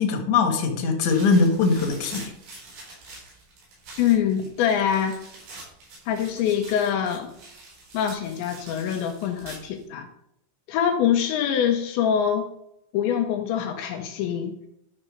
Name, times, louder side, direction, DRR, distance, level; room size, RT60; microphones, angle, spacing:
voice 1, 0.0-2.3, left 4 dB, 55° left, 3 dB, 2.3 m, -21 dB
sound 1, 1.1-9.8, right 2 dB, 85° right, 7.0 m, -45 dB
voice 2, 4.0-5.2 6.1-7.3 7.9-10.1 10.7-12.5 12.9-14.7, left 9 dB, 80° left, 4 dB, 3.0 m, -24 dB
12.5 x 4.3 x 6.4 m, 0.78 s
omnidirectional pair, 5.4 m